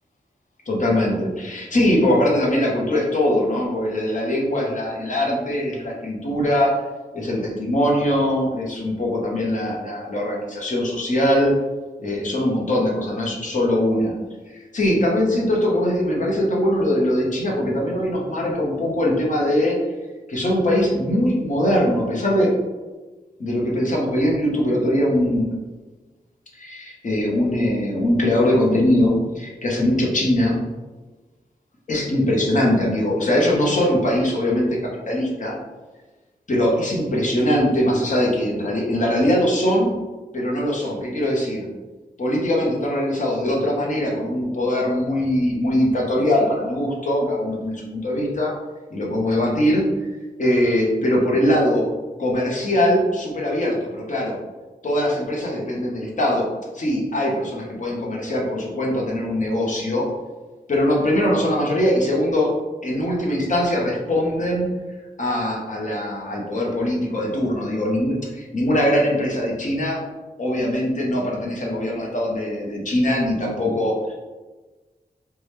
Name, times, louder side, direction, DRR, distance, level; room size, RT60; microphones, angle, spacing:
voice 1, 0.7-6.7 7.1-11.5 12.0-14.1 14.5-19.8 20.3-22.5 23.4-25.5 26.5-30.6 31.9-35.6 36.5-39.9 40.3-41.7 42.2-48.5 48.9-49.8 50.4-51.9 52.2-54.4 54.8-56.5 56.7-60.1 60.7-62.5 62.8-64.7 65.2-70.0 70.4-74.1, left 1 dB, 50° left, -3 dB, 1.0 m, -21 dB
4.7 x 2.3 x 3.2 m, 1.2 s
wide cardioid pair, 115°, 16 cm